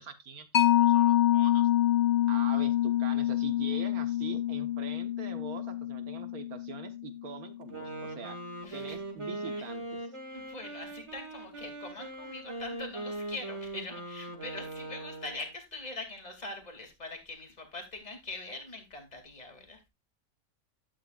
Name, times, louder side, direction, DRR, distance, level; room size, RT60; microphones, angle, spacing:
voice 1, 0.0-1.7 2.3-8.4 8.7-10.0, right 6 dB, 80° right, 8 dB, 1.8 m, -43 dB
Mallet percussion, 0.5-7.6, left 12 dB, 45° left, 0.6 m, -27 dB
Wind instrument woodwind instrument, 7.6-15.5, right 2 dB, 20° right, 2.1 m, -40 dB
voice 2, 8.6-9.0 10.3-19.8, left 2 dB, 30° left, 3 dB, 2.6 m, -43 dB
11.5 x 10.0 x 2.4 m, 0.24 s
omnidirectional pair, 1.5 m